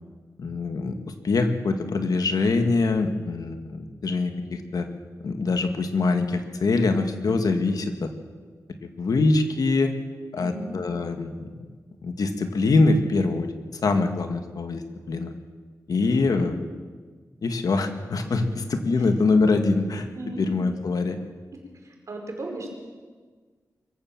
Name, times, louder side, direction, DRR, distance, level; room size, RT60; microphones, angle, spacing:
voice 1, 0.4-0.9 1.2-4.9 5.2-8.1 9.0-9.9 10.3-11.5 12.0-13.5 13.8-14.8 15.1-15.3 15.9-16.7 17.4-18.5 18.9-20.1 20.4-21.2, left 3 dB, 80° left, 6 dB, 1.9 m, -23 dB
voice 2, 10.4-10.8 18.2-18.6 19.0-19.1 20.1-20.5 21.5-22.7, right 2 dB, 55° right, 1 dB, 4.9 m, -37 dB
24.0 x 15.0 x 7.3 m, 1.5 s
wide cardioid pair, 130°, 6 cm